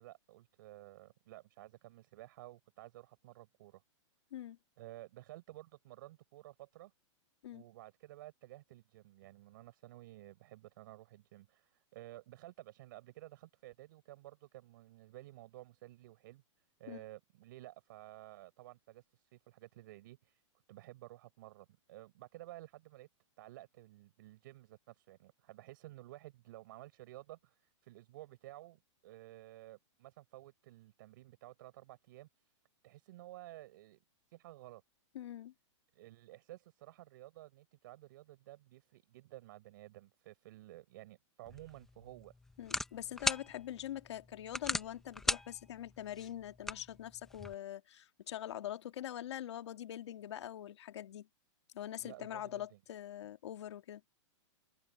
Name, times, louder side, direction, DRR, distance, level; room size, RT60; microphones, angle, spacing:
voice 1, 0.0-3.8 4.8-6.9 7.5-16.4 16.8-20.4 20.7-23.1 23.4-32.3 32.8-34.0 34.3-34.8 35.9-42.3 52.0-52.8, right 17 dB, 40° right, 6.1 m, -53 dB
voice 2, 35.1-35.5 42.6-51.3 51.7-54.0, left 11 dB, 60° left, 1.8 m, -44 dB
sound 1, 41.5-47.5, left 2 dB, ahead, 0.6 m, -40 dB
hypercardioid pair, 175°, 16 cm